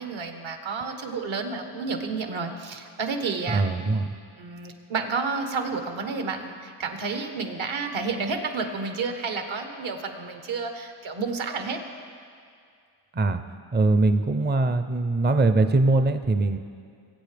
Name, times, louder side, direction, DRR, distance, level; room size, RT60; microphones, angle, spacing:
voice 1, 0.0-3.6 4.4-11.8, right 4 dB, 65° right, 5 dB, 1.4 m, -30 dB
voice 2, 3.5-4.1 13.1-13.4 13.7-16.6, right 2 dB, 20° right, 9 dB, 0.5 m, -22 dB
21.5 x 8.1 x 3.4 m, 2.3 s
cardioid pair, 100°, 50 cm